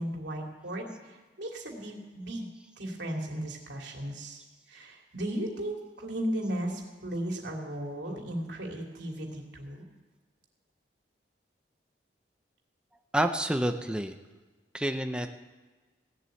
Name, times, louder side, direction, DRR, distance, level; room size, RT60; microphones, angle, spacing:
voice 1, 0.0-2.5 2.8-4.4 4.7-9.9, right 1 dB, 80° right, 1 dB, 2.6 m, -36 dB
voice 2, 13.1-14.1 14.7-15.3, right 1 dB, 5° right, 6 dB, 0.7 m, -28 dB
16.5 x 7.7 x 8.4 m, 1.3 s
head